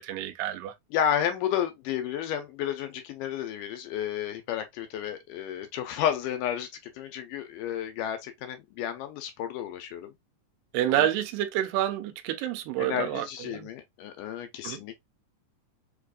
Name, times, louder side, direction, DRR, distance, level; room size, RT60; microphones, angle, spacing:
voice 1, 0.0-0.7 10.7-13.7 14.6-14.8, right 12 dB, 85° right, 2.3 m, -28 dB
voice 2, 0.9-10.1 10.9-11.1 12.8-15.0, left 9 dB, 80° left, 2.2 m, -32 dB
5.3 x 2.5 x 2.3 m
omnidirectional pair, 3.9 m